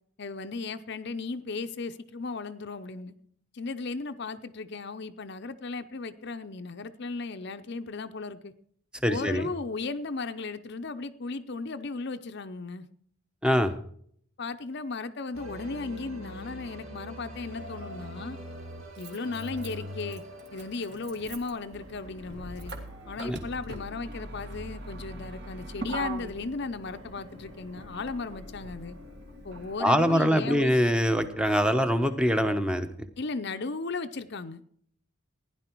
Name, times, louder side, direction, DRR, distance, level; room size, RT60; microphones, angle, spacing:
voice 1, 0.2-3.1 3.5-8.5 9.1-12.9 14.4-18.4 19.0-20.2 20.5-22.7 23.1-29.0 29.4-30.7 33.2-34.6, left 3 dB, 50° left, 10 dB, 0.6 m, -36 dB
voice 2, 9.0-9.5 13.4-13.7 23.2-23.4 29.8-32.9, equal, 5° right, 9 dB, 0.8 m, -24 dB
sound 1, 15.3-32.3, equal, 70° right, 2.5 m, -46 dB
Motor vehicle (road), 17.3-17.4 18.6-29.7, right 1 dB, 50° right, 1.8 m, -42 dB
16.0 x 10.5 x 4.5 m, 0.63 s
head